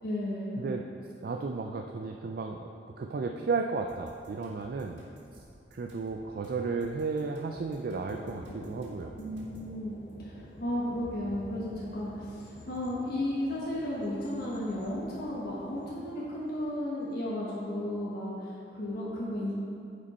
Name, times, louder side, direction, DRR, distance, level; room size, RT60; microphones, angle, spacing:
voice 1, 0.0-0.7 9.1-19.5, left 1 dB, 60° left, -6 dB, 1.3 m, -34 dB
voice 2, 1.2-2.7 3.0-5.0 5.7-9.2, right 4 dB, 55° right, 3 dB, 0.4 m, -33 dB
sound 1, 3.9-9.7, right 1 dB, 75° right, 1.9 m, -55 dB
Thunder, 8.1-17.1, equal, 80° left, 0.9 m, -49 dB
9.6 x 5.2 x 4.2 m, 2.5 s
head